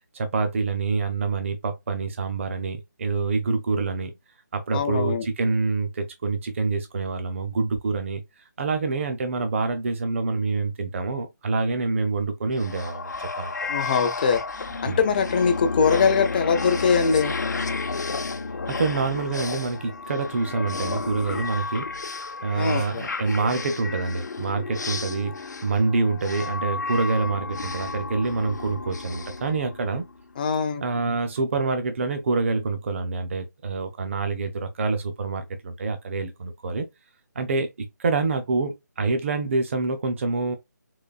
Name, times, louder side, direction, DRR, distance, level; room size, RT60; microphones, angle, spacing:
voice 1, 0.1-4.1 4.5-8.2 8.6-13.5 14.9-15.0 18.7-21.9 22.4-30.1 30.8-36.9 37.4-40.6, right 3 dB, 40° right, 0.6 m, -26 dB
voice 2, 4.7-5.3 13.7-14.4 14.8-17.3 22.5-23.0 30.4-31.1, left 6 dB, 30° left, 0.5 m, -22 dB
sound 1, 12.6-30.2, left 4 dB, 65° left, 0.7 m, -32 dB
3.9 x 2.5 x 2.4 m
figure-of-eight pair, 160°, 10 cm